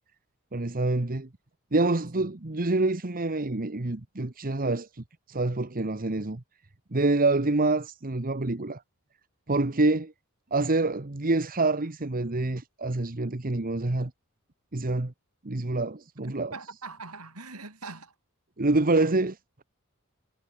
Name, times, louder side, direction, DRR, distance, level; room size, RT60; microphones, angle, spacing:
voice 1, 0.5-1.3 1.7-6.4 6.9-8.8 9.5-10.1 10.5-14.1 14.7-15.1 15.4-16.5 18.6-19.4, right 2 dB, 40° right, 1.2 m, -26 dB
voice 2, 16.2-18.1, right 3 dB, 80° right, 7.6 m, -42 dB
head